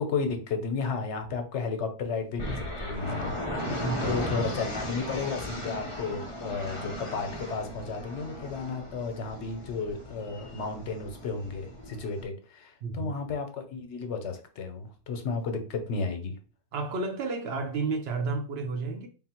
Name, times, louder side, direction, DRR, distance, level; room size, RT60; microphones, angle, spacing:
voice 1, 0.0-3.7 4.0-16.4, left 4 dB, 85° left, 1.1 m, -33 dB
sound 1, 2.4-12.2, left 1 dB, 30° left, 0.8 m, -36 dB
voice 2, 3.6-4.1 12.8-13.1 16.7-19.1, right 4 dB, 65° right, 0.9 m, -31 dB
3.6 x 2.2 x 4.3 m
omnidirectional pair, 1.1 m